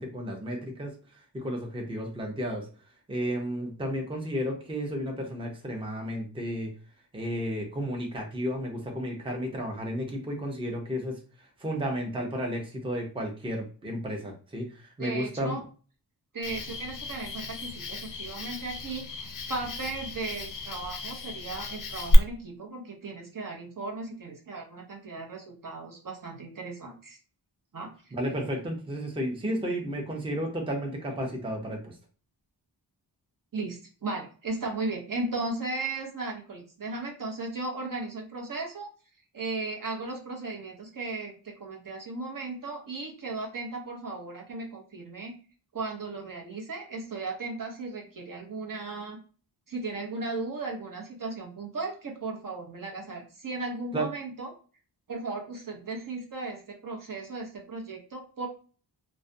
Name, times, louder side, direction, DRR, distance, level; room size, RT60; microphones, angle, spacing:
voice 1, 0.0-2.7 3.1-6.7 7.1-11.2 11.6-15.6 28.1-32.0 53.9-54.1, equal, 10° right, 1 dB, 0.5 m, -32 dB
voice 2, 15.0-15.6 16.3-27.2 27.7-27.9 33.5-38.9 39.3-45.3 45.7-49.2 49.7-54.5 55.1-58.5, right 3 dB, 50° right, 0 dB, 0.7 m, -36 dB
Cricket, 16.4-22.1, left 3 dB, 50° left, 0.5 m, -35 dB
2.4 x 2.1 x 2.5 m, 0.39 s
wide cardioid pair, 105°, 44 cm